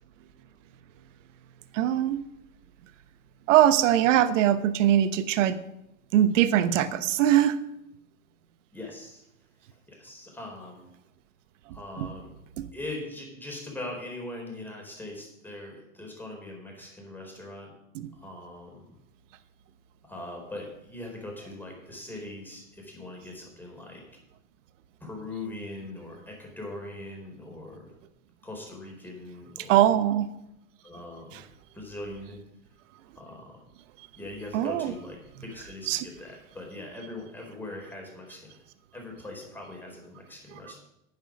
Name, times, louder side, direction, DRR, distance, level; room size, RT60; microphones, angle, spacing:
voice 1, 1.7-2.2 3.5-5.6 6.1-7.6 12.0-12.1 12.6-12.7 29.7-30.3 34.5-34.9 35.9-36.0, right 11 dB, 60° right, 13 dB, 1.1 m, -21 dB
voice 2, 8.7-9.2 9.9-10.9 11.7-12.3 12.7-17.7 18.1-18.9 20.0-24.0 25.0-27.9 28.4-29.9 30.8-31.5 31.7-32.4 33.1-33.6 34.2-38.6 38.9-40.8, left 2 dB, 5° left, 0 dB, 4.4 m, -41 dB
9.6 x 9.2 x 6.4 m, 0.82 s
hypercardioid pair, 120°, 41 cm